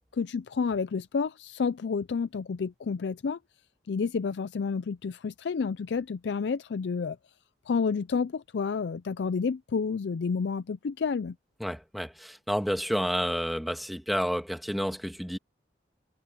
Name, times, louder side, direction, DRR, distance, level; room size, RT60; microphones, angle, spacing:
voice 1, 0.2-3.4 3.9-7.2 7.7-11.3, left 5 dB, 75° left, 0.4 m, -30 dB
voice 2, 11.6-15.4, equal, ahead, 1.7 m, -30 dB
head